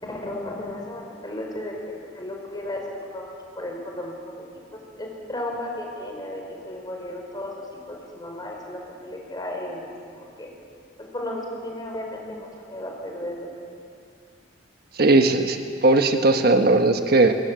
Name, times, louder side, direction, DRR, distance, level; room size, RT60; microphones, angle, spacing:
voice 1, 0.0-1.7 2.1-2.8 3.1-4.4 5.0-10.5 11.1-13.5, left 1 dB, 25° left, 0 dB, 5.0 m, -34 dB
voice 2, 15.0-15.6 15.8-17.3, right 2 dB, 60° right, 6 dB, 1.3 m, -18 dB
21.5 x 21.0 x 8.1 m, 2.3 s
head